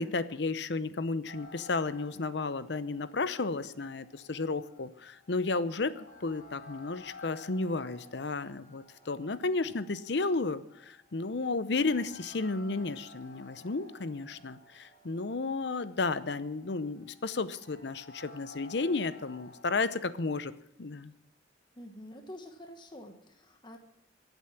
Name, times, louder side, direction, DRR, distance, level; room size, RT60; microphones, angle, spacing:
voice 1, 0.0-20.5 20.8-21.1, left 3 dB, 65° left, 14 dB, 0.7 m, -33 dB
sound 1, 1.3-19.7, left 3 dB, 45° left, 3.4 m, -54 dB
voice 2, 21.7-23.8, left 1 dB, 25° left, 5 dB, 1.3 m, -47 dB
23.5 x 8.1 x 5.9 m, 0.77 s
head